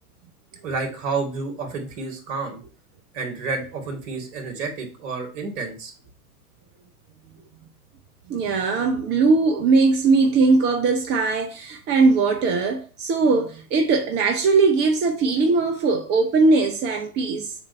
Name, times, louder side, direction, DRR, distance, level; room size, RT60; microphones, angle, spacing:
voice 1, 0.6-2.6 3.1-5.9, right 4 dB, 55° right, 2.5 m, -30 dB
voice 2, 8.3-17.5, right 4 dB, 25° right, 0.7 m, -20 dB
7.3 x 2.6 x 5.4 m
hypercardioid pair, 110°, 46 cm